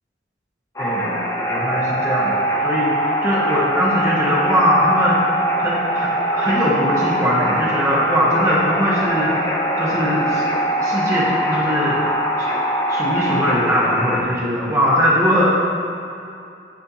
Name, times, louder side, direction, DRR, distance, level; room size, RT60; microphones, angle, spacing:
sound 1, 0.8-14.2, right 1 dB, 15° left, 0.5 m, -22 dB
voice 1, 0.8-1.2 1.5-2.3 2.6-5.3 5.6-10.4 10.8-12.0 12.4-12.5 12.9-15.5, equal, 15° right, -7 dB, 1.2 m, -20 dB
9.7 x 4.4 x 2.8 m, 2.6 s
head